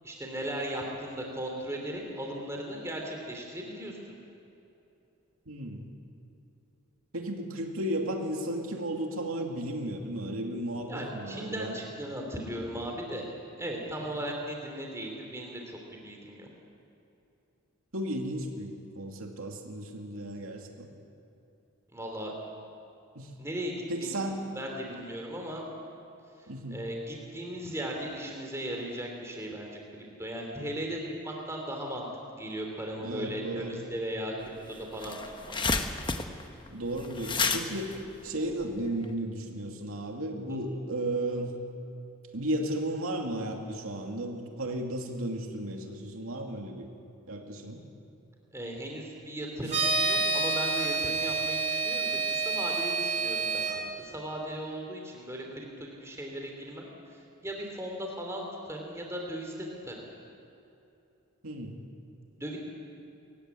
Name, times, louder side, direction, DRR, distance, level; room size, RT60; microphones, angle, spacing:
voice 1, 0.0-4.0 10.9-13.3 13.6-16.5 21.9-22.3 23.4-24.2 24.5-25.7 26.7-32.1 32.3-35.6 48.5-59.9 62.3-62.6, right 1 dB, 15° right, 1 dB, 3.2 m, -37 dB
voice 2, 5.5-5.8 7.1-11.8 17.9-20.9 23.1-23.3 23.9-24.5 26.5-26.8 33.0-33.8 36.7-38.0 38.2-41.6 42.3-46.9 47.3-47.8 61.4-61.7, right 1 dB, 80° right, 2 dB, 2.6 m, -34 dB
sound 1, 34.5-34.6 34.8-39.1, left 4 dB, 20° left, 1.0 m, -31 dB
sound 2, 49.7-53.8, right 3 dB, 30° right, 3.1 m, -28 dB
24.0 x 15.5 x 9.8 m, 2.9 s
head